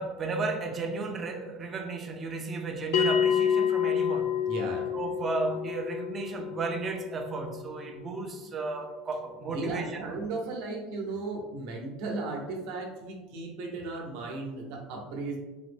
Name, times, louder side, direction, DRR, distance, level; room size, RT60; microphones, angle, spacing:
voice 1, 0.0-4.4 4.9-10.0, right 3 dB, 20° right, 3 dB, 0.4 m, -34 dB
Bell, 2.9-8.0, left 8 dB, 65° left, 0.5 m, -28 dB
voice 2, 4.5-4.9 9.5-15.4, right 3 dB, 60° right, 1 dB, 0.7 m, -35 dB
3.6 x 2.0 x 3.3 m, 1.1 s
cardioid pair, 160°, 0 cm